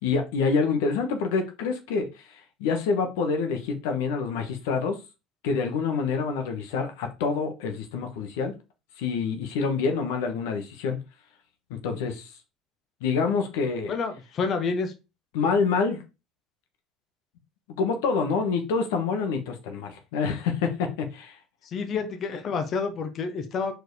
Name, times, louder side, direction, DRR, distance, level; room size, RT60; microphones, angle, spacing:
voice 1, 0.0-5.0 5.4-8.5 9.0-11.0 11.7-12.3 13.0-13.9 15.3-16.0 17.8-21.4 21.9-22.0, left 5 dB, 80° left, 1.4 m, -27 dB
voice 2, 13.9-14.9 21.6-23.7, left 5 dB, 45° left, 1.2 m, -29 dB
4.7 x 4.7 x 4.8 m
supercardioid pair, 90°, 0 cm